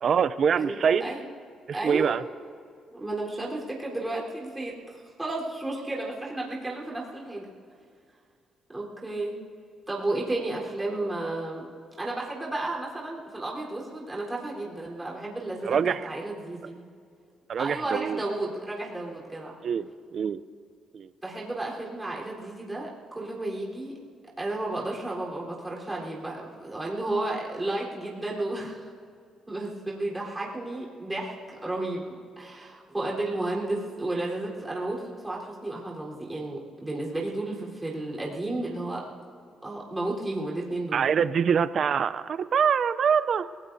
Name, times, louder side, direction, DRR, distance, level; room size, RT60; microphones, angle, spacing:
voice 1, 0.0-1.1 1.7-2.2 15.7-16.1 17.5-18.2 19.6-20.4 20.9-21.1 40.9-43.5, right 7 dB, 55° right, 14 dB, 0.5 m, -24 dB
voice 2, 0.6-1.2 1.7-2.2 2.9-7.5 8.7-9.4 9.9-11.6 12.0-16.9 17.6-19.6 21.2-23.9 24.4-28.9 29.5-39.0 39.6-41.0, right 2 dB, 15° right, -3 dB, 3.9 m, -33 dB
27.0 x 18.5 x 2.7 m, 2.3 s
cardioid pair, 90°, 0 cm